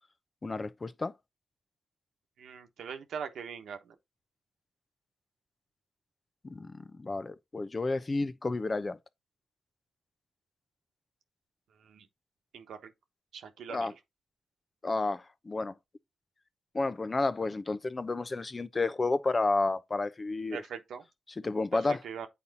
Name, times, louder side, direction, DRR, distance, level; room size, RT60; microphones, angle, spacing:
voice 1, 0.4-1.1 6.4-9.0 13.7-13.9 14.8-15.7 16.7-20.6 21.4-22.0, left 3 dB, 35° left, 0.8 m, -31 dB
voice 2, 2.4-3.8 11.8-12.1 12.5-12.9 13.3-13.9 20.5-21.0 21.9-22.3, right 7 dB, 80° right, 1.2 m, -41 dB
8.3 x 4.2 x 4.1 m
supercardioid pair, 50°, 0 cm